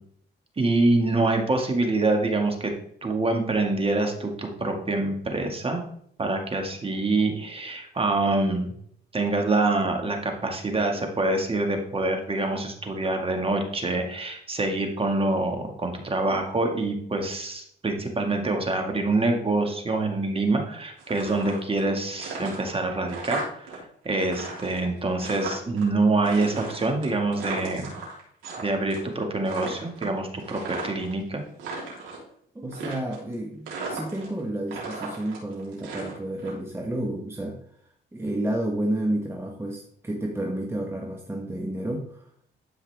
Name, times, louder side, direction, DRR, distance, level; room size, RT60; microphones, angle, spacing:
voice 1, 0.6-2.7 3.0-5.8 6.2-8.7 9.1-27.9 28.6-31.4, right 2 dB, 30° right, 3 dB, 2.0 m, -25 dB
sound 1, 21.0-21.9 22.1-23.8 24.0-25.8 26.2-28.6 28.9-29.2 29.4-31.1 31.5-32.2 32.7-33.3 33.7-34.4 34.7-36.5, right 3 dB, 85° right, 3.7 m, -36 dB
voice 2, 32.5-37.6 38.1-42.3, right 1 dB, 10° right, 0 dB, 1.3 m, -30 dB
12.5 x 5.6 x 3.6 m, 0.65 s
cardioid pair, 90°, 20 cm